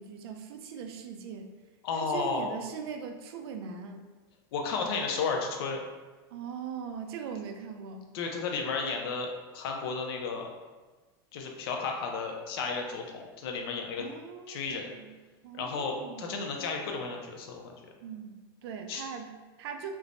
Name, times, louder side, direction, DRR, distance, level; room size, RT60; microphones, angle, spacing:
voice 1, 0.0-1.5 1.9-4.1 6.3-8.1 14.0-15.1 15.4-16.3 18.0-20.0, right 6 dB, 80° right, 5 dB, 0.4 m, -40 dB
voice 2, 1.8-2.5 4.5-5.8 8.1-10.5 11.3-14.0 14.5-14.9 15.5-17.7 18.9-19.0, left 4 dB, 75° left, 2 dB, 0.5 m, -33 dB
3.2 x 2.0 x 2.5 m, 1.3 s
supercardioid pair, 150°, 13 cm